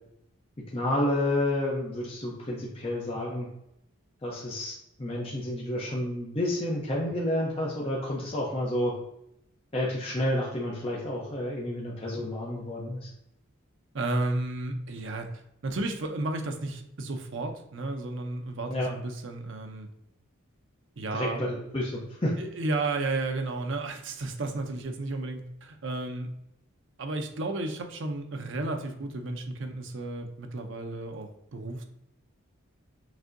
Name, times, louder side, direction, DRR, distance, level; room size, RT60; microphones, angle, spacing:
voice 1, 0.7-3.5 4.2-4.7 5.0-8.9 9.7-13.1 18.7-18.9 21.1-22.3, left 1 dB, 25° left, -4 dB, 0.6 m, -30 dB
voice 2, 13.9-15.3 15.6-19.9 21.0-21.4 22.4-26.3 27.0-31.8, right 2 dB, 60° right, 5 dB, 0.6 m, -33 dB
6.0 x 2.7 x 2.6 m, 0.80 s
head